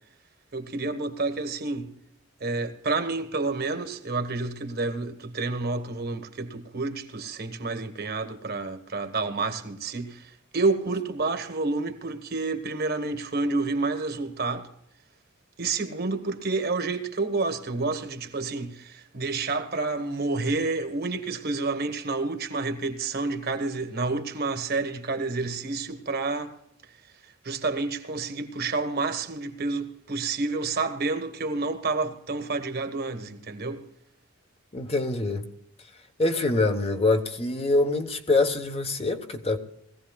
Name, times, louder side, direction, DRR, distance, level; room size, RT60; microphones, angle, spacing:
voice 1, 0.5-1.9 2.4-14.7 15.6-26.5 27.4-33.8, right 3 dB, 50° right, 1.3 m, -29 dB
voice 2, 34.7-35.5 36.2-39.6, left 2 dB, 30° left, 1.1 m, -24 dB
21.5 x 16.0 x 2.3 m
head